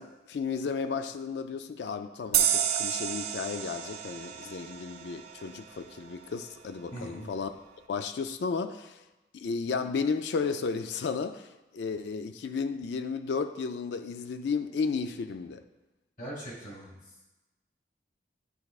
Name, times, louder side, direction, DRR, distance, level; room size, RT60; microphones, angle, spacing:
voice 1, 0.0-7.5 7.9-9.0 9.3-11.5 11.7-15.6, left 5 dB, 75° left, 9 dB, 0.4 m, -33 dB
sound 1, 2.3-5.7, right 9 dB, 60° right, 0.4 m, -30 dB
voice 2, 6.9-7.3 16.2-17.1, right 1 dB, 50° left, -4 dB, 2.3 m, -41 dB
11.0 x 4.7 x 2.4 m, 1.1 s
head